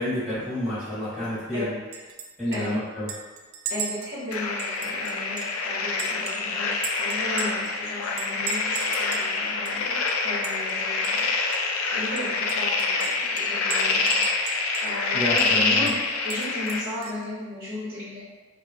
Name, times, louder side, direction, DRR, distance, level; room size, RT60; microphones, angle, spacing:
voice 1, 0.0-1.8 2.4-3.1 15.1-15.9, left 1 dB, ahead, -16 dB, 1.0 m, -29 dB
Chink clink, 1.9-2.3 2.5-2.6 3.1-5.6 6.0-7.7 8.2-9.3 9.6-9.7 10.1-10.7 11.0-11.2 11.5-11.6 12.2-15.0 15.4-15.5 15.9-17.2, right 6 dB, 80° right, 0.3 m, -36 dB
voice 2, 2.5-2.8 3.7-11.3 11.9-14.2 14.8-18.2, left 1 dB, 45° right, -10 dB, 0.8 m, -35 dB
sound 1, 4.3-16.8, left 4 dB, 85° left, 0.4 m, -26 dB
3.3 x 2.0 x 2.4 m, 1.3 s
head